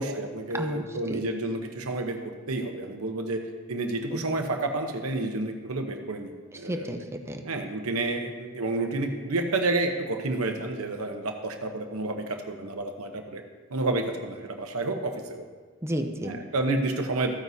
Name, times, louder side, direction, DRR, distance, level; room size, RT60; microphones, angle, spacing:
voice 1, 0.0-2.2 2.5-6.9 7.4-13.4 13.7-15.4 16.2-17.3, right 2 dB, 80° right, 4 dB, 0.9 m, -30 dB
voice 2, 0.5-1.2 4.1-4.3 6.6-7.4 15.8-16.4, equal, 15° right, 5 dB, 0.6 m, -32 dB
14.0 x 9.2 x 2.8 m, 1.4 s
head